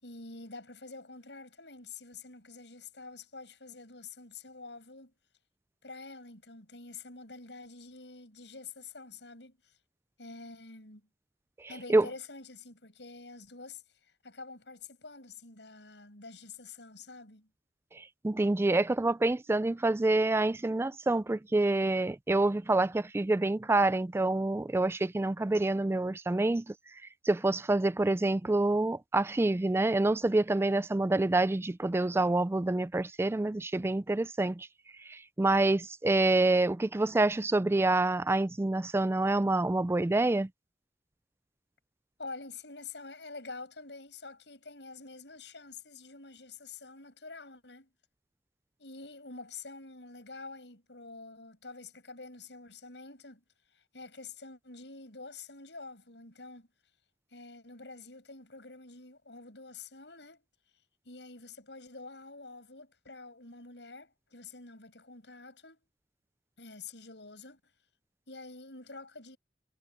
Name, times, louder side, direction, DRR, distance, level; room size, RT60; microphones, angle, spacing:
voice 1, 0.0-5.1 5.8-9.7 10.2-11.1 11.7-13.8 14.2-17.5 42.2-47.9 48.8-53.4 53.7-56.7 57.3-60.4 61.0-65.9 66.6-67.6 68.3-69.4, left 3 dB, 90° left, 6.0 m, -47 dB
voice 2, 11.6-12.1 17.9-26.7 27.2-34.7 35.0-40.5, right 2 dB, 15° right, 0.3 m, -27 dB
head